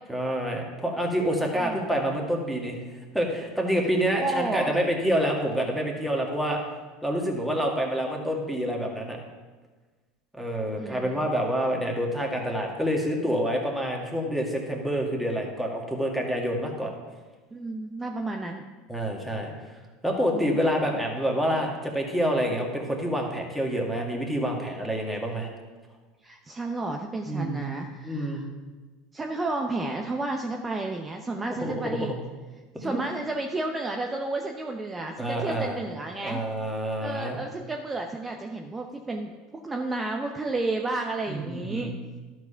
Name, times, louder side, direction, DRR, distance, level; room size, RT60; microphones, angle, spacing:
voice 1, 0.1-2.8 3.1-6.6 7.0-9.2 10.4-16.9 18.9-19.8 20.0-25.5 27.3-27.7 28.0-28.4 31.6-31.7 32.0-32.1 32.7-33.0 35.2-35.8 36.2-37.4 41.3-41.9, equal, ahead, -1 dB, 2.0 m, -27 dB
voice 2, 4.1-4.7 10.8-11.3 17.5-18.6 20.3-20.6 26.2-28.4 29.1-32.1 32.8-36.4 37.0-39.3 39.6-41.9, right 2 dB, 20° right, 2 dB, 0.8 m, -31 dB
12.0 x 4.7 x 5.7 m, 1.3 s
hypercardioid pair, 90°, 0 cm